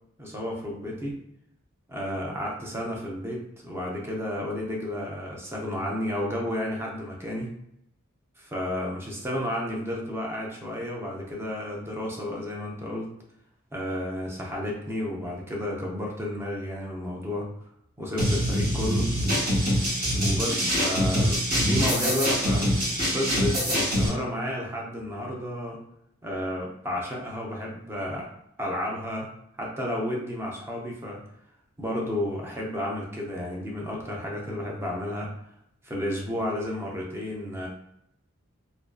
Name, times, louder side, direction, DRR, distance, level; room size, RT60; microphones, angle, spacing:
voice 1, 0.2-1.2 1.9-7.5 8.4-13.1 13.7-17.5 18.0-19.1 20.2-25.8 26.2-28.3 28.6-29.3 29.6-31.2 31.8-35.3 35.8-37.7, left 1 dB, 10° right, -2 dB, 0.5 m, -32 dB
sound 1, 18.2-24.1, equal, 45° right, 1.1 m, -24 dB
2.5 x 2.4 x 2.2 m, 0.77 s
head